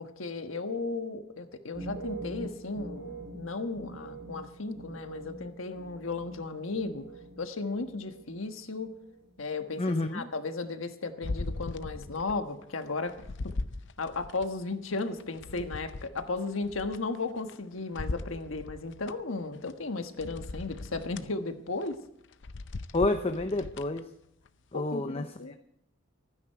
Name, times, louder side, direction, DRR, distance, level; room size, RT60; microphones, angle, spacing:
voice 1, 0.0-7.0 7.4-8.9 9.4-13.1 13.4-13.5 14.0-21.9 24.7-25.5, left 3 dB, 80° left, 7 dB, 1.4 m, -35 dB
sound 1, 1.6-7.5 7.8-8.5 8.8-9.2, right 2 dB, 55° right, 5.4 m, -45 dB
voice 2, 9.8-10.3 22.9-24.1 24.7-25.3, left 2 dB, 30° left, 8 dB, 0.7 m, -29 dB
sound 2, 11.2-12.4 12.8-14.5 15.0-17.6 17.9-19.1 19.7-19.8 20.2-21.3 21.7-21.9 22.3-24.0 24.5-24.6, left 2 dB, 60° left, 0.6 m, -39 dB
26.0 x 9.8 x 4.6 m, 0.75 s
head